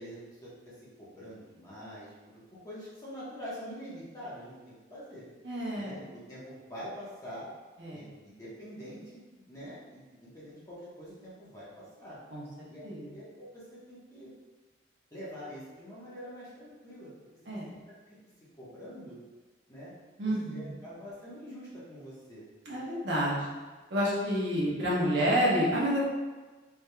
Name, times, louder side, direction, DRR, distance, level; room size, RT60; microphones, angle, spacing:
voice 1, 0.0-2.1 2.5-5.2 5.7-7.5 7.9-12.2 12.7-14.3 15.1-17.1 17.5-17.6 18.1-18.2 18.6-19.2 19.7-19.9 20.2-22.4, equal, 20° left, -9 dB, 1.3 m, -45 dB
voice 2, 5.4-6.0 7.8-8.1 12.3-12.4 12.8-13.1 17.5-17.8 20.2-20.8 22.6-23.5 23.9-26.1, equal, 60° right, -6 dB, 1.1 m, -29 dB
5.0 x 3.5 x 2.3 m, 1.3 s
head